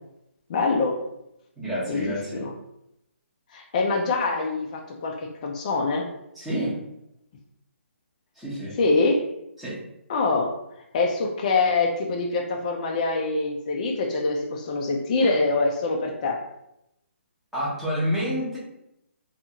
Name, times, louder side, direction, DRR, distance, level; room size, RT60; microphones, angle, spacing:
voice 1, 0.5-0.9 1.9-2.5 3.5-6.1 8.8-9.2 10.1-10.5 10.9-16.4, left 3 dB, 30° left, 1 dB, 0.3 m, -24 dB
voice 2, 1.6-2.4 6.3-6.8 8.4-8.8 9.6-9.8 17.5-18.6, equal, ahead, -10 dB, 0.7 m, -28 dB
2.5 x 2.4 x 2.8 m, 0.83 s
hypercardioid pair, 160°, 7 cm